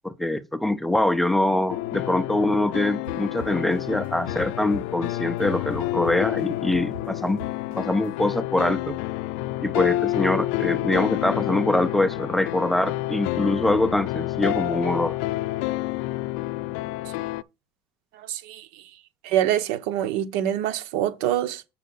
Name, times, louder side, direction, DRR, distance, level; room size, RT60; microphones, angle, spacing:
voice 1, 0.0-7.4 7.8-9.0 9.6-15.2, left 1 dB, 5° left, 0.5 m, -24 dB
sound 1, 1.7-17.4, left 17 dB, 85° left, 0.4 m, -29 dB
sound 2, 3.0-5.4 5.7-8.1, equal, 55° right, 3.1 m, -40 dB
voice 2, 18.3-18.7 19.2-21.7, right 11 dB, 80° right, 1.0 m, -25 dB
7.6 x 6.0 x 4.1 m
cardioid pair, 150°, 6 cm